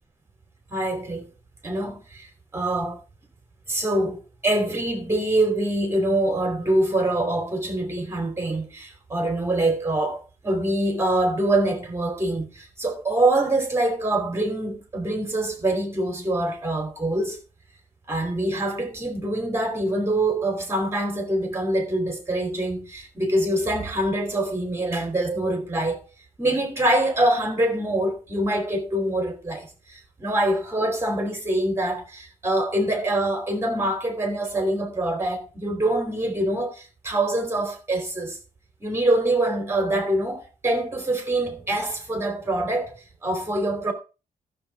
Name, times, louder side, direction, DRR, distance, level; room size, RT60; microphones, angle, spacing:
voice 1, 0.7-1.3 1.6-2.3 2.5-3.0 3.7-4.2 4.4-17.4 18.1-26.0 26.4-38.4 38.8-42.9 43.2-43.9, right 1 dB, 15° right, 3.1 m, -24 dB
14.5 x 7.3 x 3.5 m
wide cardioid pair, 145°, 15 cm